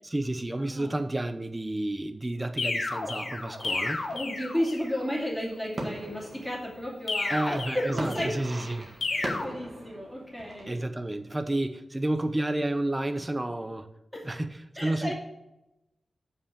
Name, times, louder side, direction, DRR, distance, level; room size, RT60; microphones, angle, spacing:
voice 1, 0.0-4.0 7.3-8.9 10.7-13.9 14.2-15.1, right 1 dB, 15° right, 0.6 m, -31 dB
voice 2, 0.6-0.9 4.1-8.3 9.1-10.8 14.1-14.3 14.8-15.1, equal, ahead, 2.6 m, -33 dB
sound 1, 2.6-5.0 7.1-8.4 9.0-9.4, left 3 dB, 80° left, 1.7 m, -32 dB
sound 2, 3.6-10.7, right 1 dB, 35° right, 1.7 m, -41 dB
7.2 x 5.6 x 7.0 m
wide cardioid pair, 160°, 0 cm